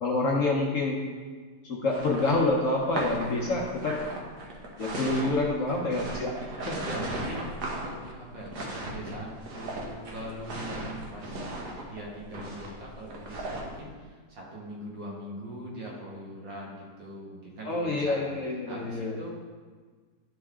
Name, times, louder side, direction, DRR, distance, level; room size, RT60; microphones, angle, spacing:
voice 1, 0.0-1.0 1.6-4.0 4.8-6.3 6.6-6.9 17.6-19.2, left 2 dB, 55° left, -1 dB, 1.1 m, -27 dB
sound 1, 1.9-13.8, right 2 dB, 60° right, 1.6 m, -37 dB
voice 2, 5.7-11.5 11.8-18.3 18.7-19.3, equal, 85° right, -4 dB, 2.4 m, -41 dB
11.5 x 4.1 x 3.6 m, 1.5 s
omnidirectional pair, 2.0 m